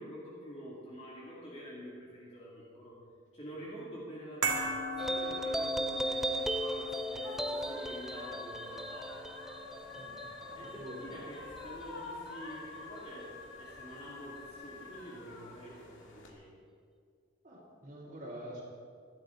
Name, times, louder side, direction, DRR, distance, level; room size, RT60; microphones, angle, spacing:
voice 1, 0.0-3.0 3.3-9.2 10.5-16.5, equal, 30° left, -7 dB, 2.6 m, -47 dB
sound 1, 4.4-10.8 11.1-11.2, right 2 dB, 65° right, 2.3 m, -40 dB
sound 2, 5.0-11.8, right 1 dB, ahead, 0.4 m, -36 dB
sound 3, 5.8-16.3, left 3 dB, 75° left, 2.1 m, -47 dB
voice 2, 10.5-11.0 17.4-18.6, equal, 35° right, -11 dB, 3.1 m, -46 dB
20.5 x 12.0 x 3.9 m, 2.2 s
head